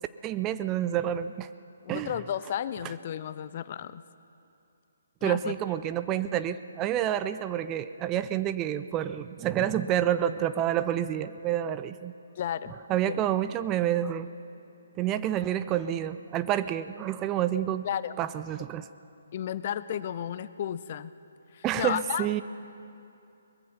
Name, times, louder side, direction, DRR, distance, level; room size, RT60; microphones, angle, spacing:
voice 1, 0.2-1.5 1.9-2.1 5.2-12.1 12.9-14.3 15.0-17.8 18.2-18.9 21.6-22.4, right 11 dB, 20° right, 13 dB, 0.5 m, -28 dB
voice 2, 1.8-4.0 5.2-5.5 12.4-12.7 13.0-13.2 17.8-18.1 19.3-21.1 21.5-22.3, left 10 dB, 35° left, 15 dB, 0.6 m, -33 dB
22.5 x 20.0 x 5.8 m, 2.8 s
figure-of-eight pair, 135°, 0 cm